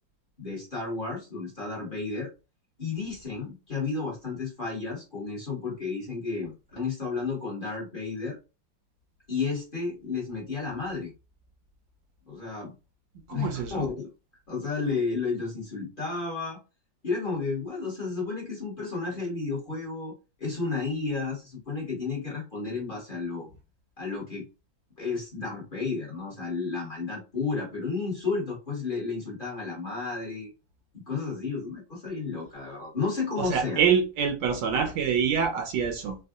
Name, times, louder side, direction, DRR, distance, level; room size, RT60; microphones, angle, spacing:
voice 1, 0.4-2.3 2.8-8.4 9.3-11.1 12.3-12.7 13.3-14.1 14.5-16.6 17.0-20.1 20.4-23.5 24.0-24.5 25.0-30.5 30.9-33.8, left 4 dB, 35° left, 1.1 m, -32 dB
voice 2, 13.3-13.9 33.4-36.2, right 7 dB, 75° right, 1.2 m, -26 dB
3.6 x 2.3 x 2.4 m
omnidirectional pair, 2.0 m